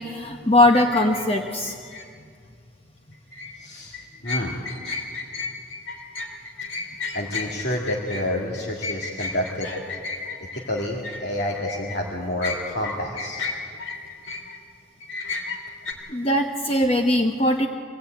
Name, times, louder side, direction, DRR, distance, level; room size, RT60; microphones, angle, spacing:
voice 1, 0.0-1.8 16.1-17.7, left 1 dB, 30° left, 3 dB, 1.0 m, -20 dB
sound 1, 0.7-2.1 3.1-3.5 3.9-12.0 12.4-14.6 15.0-15.9, left 4 dB, 80° left, 3.6 m, -33 dB
voice 2, 3.6-4.6 6.8-9.7 10.5-13.5, left 1 dB, 55° left, -2 dB, 2.3 m, -29 dB
24.5 x 17.5 x 9.2 m, 2.2 s
head